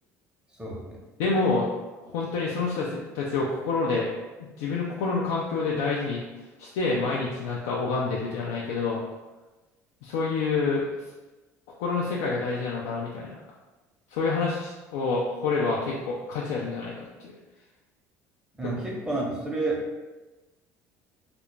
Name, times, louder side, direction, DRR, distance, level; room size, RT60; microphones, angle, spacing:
voice 1, 0.5-1.0 18.5-19.8, right 2 dB, 10° right, -3 dB, 0.9 m, -30 dB
voice 2, 1.2-1.7 2.1-4.1 4.4-6.2 6.6-9.0 10.0-10.9 11.8-13.4 14.1-17.1 18.6-18.7, left 4 dB, 80° left, -4 dB, 0.4 m, -27 dB
2.4 x 2.1 x 3.2 m, 1.2 s
hypercardioid pair, 75°, 8 cm